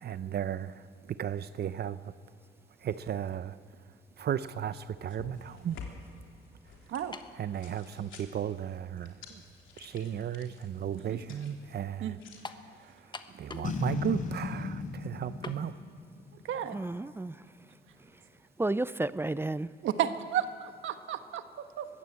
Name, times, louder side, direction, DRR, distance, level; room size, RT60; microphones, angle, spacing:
voice 1, 0.0-2.1 2.8-3.6 4.2-5.8 7.4-9.4 9.8-12.2 12.8-12.9 13.3-15.7, right 9 dB, 55° right, 0.7 m, -35 dB
sound 1, 4.7-12.4, left 5 dB, 75° left, 3.3 m, -51 dB
sound 2, 7.1-7.4 8.3-8.4 12.4-12.7 13.1-13.8 14.1-14.2 15.4-15.6, left 3 dB, 20° left, 1.2 m, -42 dB
Boom, 13.6-17.0, left 4 dB, 45° left, 3.5 m, -36 dB
voice 2, 16.7-17.7 18.0-18.2 18.6-19.7, right 2 dB, 10° right, 0.5 m, -33 dB
voice 3, 19.8-21.9, right 10 dB, 75° right, 1.3 m, -32 dB
22.0 x 15.0 x 8.4 m
cardioid pair, 90°, 20 cm